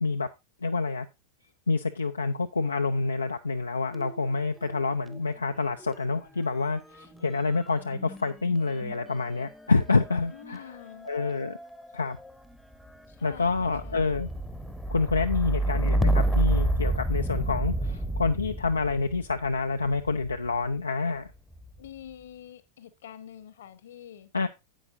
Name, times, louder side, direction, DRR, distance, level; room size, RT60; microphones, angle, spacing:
voice 1, 0.6-1.1 1.7-10.8 11.0-11.6 11.9-12.2 13.2-14.3 14.9-21.3 24.3-24.5, left 4 dB, 80° left, 0.5 m, -27 dB
sound 1, 3.9-5.3 5.5-20.6 21.3-21.9, right 1 dB, ahead, 0.9 m, -31 dB
voice 2, 10.3-11.1 13.1-14.2 21.8-24.3, left 10 dB, 60° left, 1.1 m, -46 dB
10.0 x 8.7 x 2.6 m
figure-of-eight pair, 90°, 0 cm